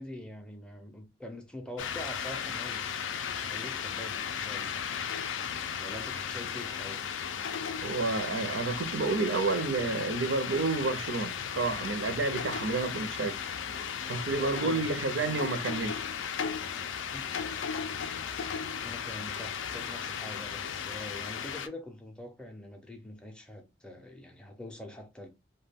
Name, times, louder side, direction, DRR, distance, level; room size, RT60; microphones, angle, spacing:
voice 1, 0.0-4.9 5.8-7.0 14.3-14.9 15.3-15.4 17.1-17.3 18.8-25.3, left 1 dB, 5° left, 0.4 m, -44 dB
sound 1, 1.8-21.7, left 7 dB, 85° left, 0.4 m, -35 dB
voice 2, 7.8-13.4 14.1-16.0, right 3 dB, 75° right, 0.5 m, -30 dB
2.2 x 2.2 x 3.4 m
head